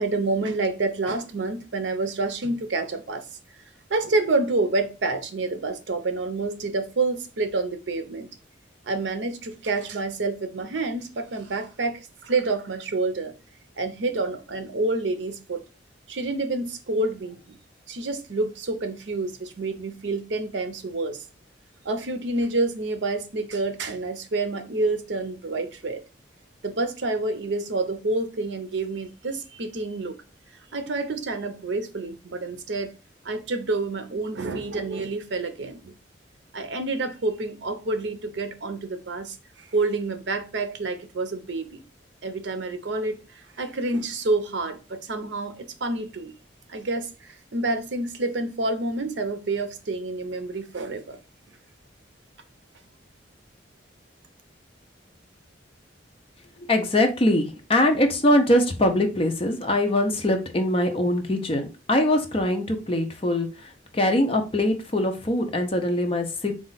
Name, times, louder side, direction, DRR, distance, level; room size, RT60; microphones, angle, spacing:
voice 1, 0.0-3.2 3.9-8.3 8.9-13.3 13.8-15.6 16.1-17.6 17.9-21.3 21.8-26.0 26.6-30.1 30.7-32.9 33.2-35.9 36.5-41.8 42.2-46.3 46.7-51.2, right 3 dB, 70° right, 0.6 m, -28 dB
voice 2, 56.7-66.5, left 1 dB, 30° left, 0.7 m, -22 dB
4.2 x 2.5 x 3.9 m
head